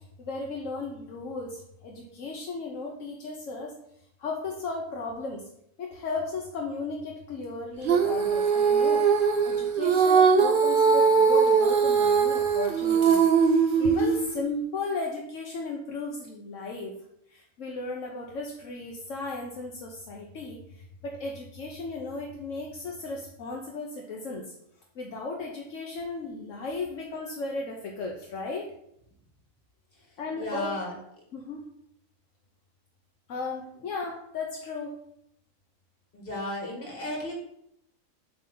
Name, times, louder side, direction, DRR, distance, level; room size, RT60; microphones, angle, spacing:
voice 1, 0.2-3.7 4.2-5.5 5.8-9.1 9.4-17.0 17.3-24.5 25.0-28.7 30.2-30.7 31.3-31.6 33.3-35.0, left 3 dB, 70° left, 0 dB, 1.2 m, -35 dB
Female singing, 7.8-14.3, right 6 dB, 50° right, 0.8 m, -21 dB
voice 2, 30.4-30.9 36.1-37.3, left 1 dB, 45° left, -2 dB, 2.1 m, -34 dB
7.4 x 3.4 x 5.4 m, 0.75 s
omnidirectional pair, 1.4 m